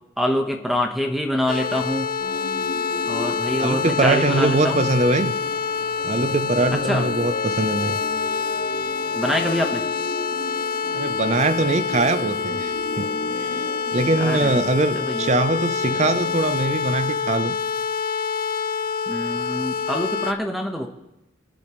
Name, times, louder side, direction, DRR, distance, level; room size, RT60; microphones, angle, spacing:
voice 1, 0.2-2.1 3.1-4.8 6.7-7.1 9.1-9.8 14.2-14.5 15.0-15.3 19.1-20.9, left 1 dB, ahead, 3 dB, 1.1 m, -25 dB
sound 1, 1.5-20.3, left 5 dB, 50° left, 0.6 m, -26 dB
sound 2, 2.2-16.6, left 1 dB, 70° left, 4.0 m, -35 dB
voice 2, 3.6-5.3 6.0-8.0 10.9-13.1 13.4-13.5 13.9-17.6, right 2 dB, 35° right, 12 dB, 0.7 m, -22 dB
28.0 x 10.5 x 3.2 m, 0.90 s
head